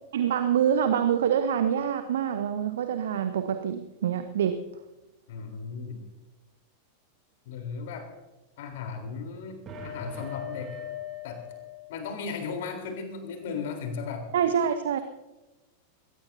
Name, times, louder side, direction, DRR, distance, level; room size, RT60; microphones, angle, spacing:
voice 1, 0.1-4.6 14.3-15.0, right 8 dB, 60° right, 10 dB, 0.8 m, -26 dB
voice 2, 5.3-6.0 7.5-8.1 8.6-10.8 11.2-11.4 11.9-14.3, left 5 dB, 55° left, 5 dB, 3.7 m, -36 dB
sound 1, 9.7-12.3, left 6 dB, 30° right, 3.0 m, -40 dB
21.5 x 18.0 x 2.8 m, 1.1 s
figure-of-eight pair, 90°, 0 cm